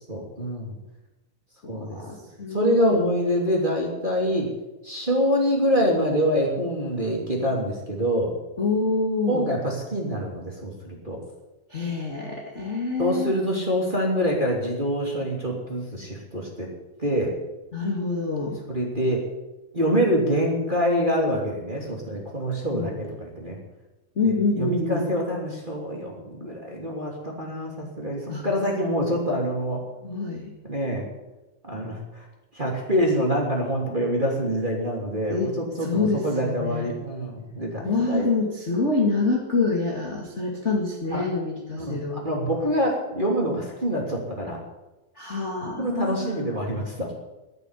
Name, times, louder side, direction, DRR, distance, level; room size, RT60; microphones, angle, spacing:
voice 1, 0.1-0.8 1.7-2.0 2.5-4.5 4.8-8.3 9.3-11.2 13.0-16.7 17.0-17.3 18.7-19.2 19.7-23.6 24.2-29.8 30.6-31.1 31.6-32.3 32.5-38.3 41.1-41.2 41.8-44.6 45.8-47.1, equal, 15° right, -2 dB, 2.6 m, -26 dB
voice 2, 1.6-3.1 8.6-9.5 11.7-13.4 17.7-18.6 22.7-23.0 24.1-25.1 28.3-28.4 30.0-30.5 35.3-35.5 35.8-36.9 37.8-42.2 45.1-46.5, left 3 dB, 25° left, -1 dB, 1.6 m, -26 dB
12.0 x 9.9 x 9.8 m, 1.0 s
omnidirectional pair, 4.3 m